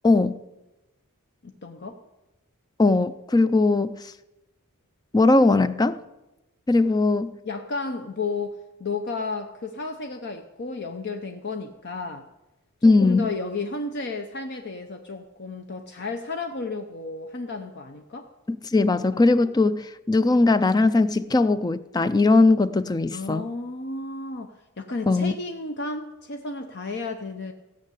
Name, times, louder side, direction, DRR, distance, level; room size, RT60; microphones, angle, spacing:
voice 1, 0.0-0.4 2.8-4.1 5.1-6.0 6.7-7.4 12.8-13.3 18.5-23.5 25.1-25.3, left 3 dB, 15° left, 0.4 m, -20 dB
voice 2, 1.4-2.0 7.4-12.3 12.8-18.3 23.1-27.5, left 3 dB, 50° left, 0.8 m, -33 dB
16.0 x 6.5 x 8.4 m
head